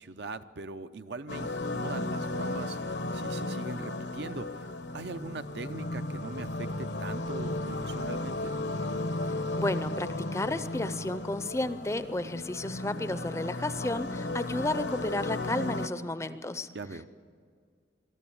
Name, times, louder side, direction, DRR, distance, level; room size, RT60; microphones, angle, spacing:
voice 1, 0.0-4.7 4.9-8.6 16.7-17.1, right 3 dB, 65° right, 11 dB, 0.6 m, -41 dB
Opening Scene, 1.3-15.9, left 2 dB, 70° left, 0.9 m, -34 dB
voice 2, 9.6-16.7, left 2 dB, 15° left, 13 dB, 0.5 m, -32 dB
23.0 x 13.5 x 8.6 m, 2.1 s
head